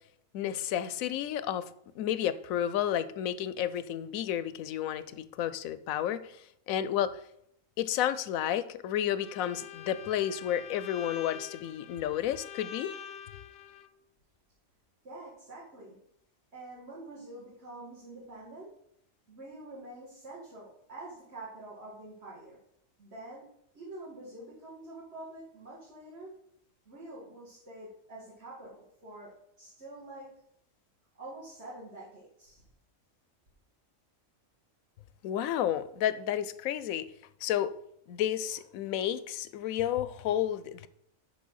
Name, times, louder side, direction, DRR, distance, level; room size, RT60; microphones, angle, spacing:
voice 1, 0.3-1.6 1.9-7.2 7.8-12.9 35.2-37.1 37.4-37.7 38.1-40.9, left 10 dB, 85° left, 1.0 m, -31 dB
Bowed string instrument, 9.2-13.9, left 9 dB, 60° left, 0.7 m, -45 dB
voice 2, 15.0-16.0 16.5-18.8 19.3-22.6 23.0-23.5 23.7-26.3 26.9-30.4 31.2-32.6, right 2 dB, 50° right, 2.3 m, -46 dB
6.3 x 5.5 x 6.3 m
omnidirectional pair, 1.4 m